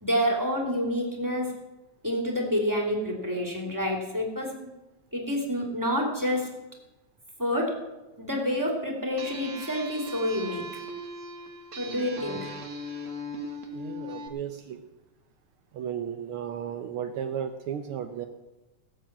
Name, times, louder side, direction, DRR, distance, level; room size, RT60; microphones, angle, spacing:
voice 1, 0.0-1.5 2.0-4.5 5.1-6.5 7.4-7.8 8.2-10.7 11.8-12.5, equal, 5° right, -1 dB, 2.4 m, -28 dB
sound 1, 9.2-14.3, equal, 35° right, 1.3 m, -39 dB
voice 2, 13.7-14.8 15.7-18.3, right 8 dB, 75° right, 6 dB, 1.2 m, -34 dB
17.5 x 7.5 x 7.4 m, 1.1 s
omnidirectional pair, 3.3 m